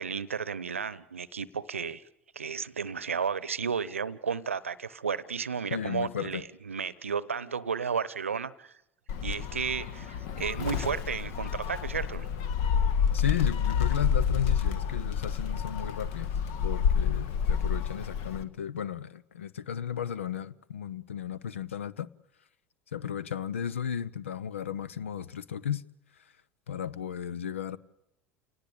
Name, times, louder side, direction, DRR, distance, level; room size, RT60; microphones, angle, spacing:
voice 1, 0.0-2.0 2.3-8.8 9.2-12.3, right 6 dB, 85° right, 0.8 m, -33 dB
voice 2, 5.7-6.4 13.1-16.3 16.6-22.1 22.9-25.9 26.7-27.8, left 9 dB, 75° left, 0.8 m, -34 dB
Gull seagull, 9.1-18.4, left 7 dB, 60° left, 1.6 m, -29 dB
29.5 x 18.5 x 8.6 m
figure-of-eight pair, 75°, 7 cm